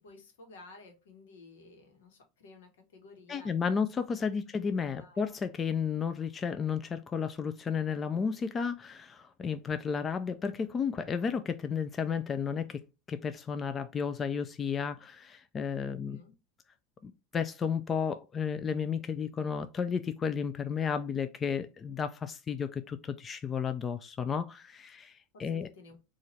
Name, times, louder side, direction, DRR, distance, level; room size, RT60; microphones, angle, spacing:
voice 1, 0.0-3.8 4.3-4.5 4.7-5.2 15.9-16.3 25.3-26.0, left 3 dB, 85° left, 1.2 m, -54 dB
voice 2, 3.3-12.8 13.1-16.2 17.0-25.7, left 6 dB, 30° left, 0.4 m, -33 dB
3.9 x 2.5 x 3.1 m
hypercardioid pair, 100°, 0 cm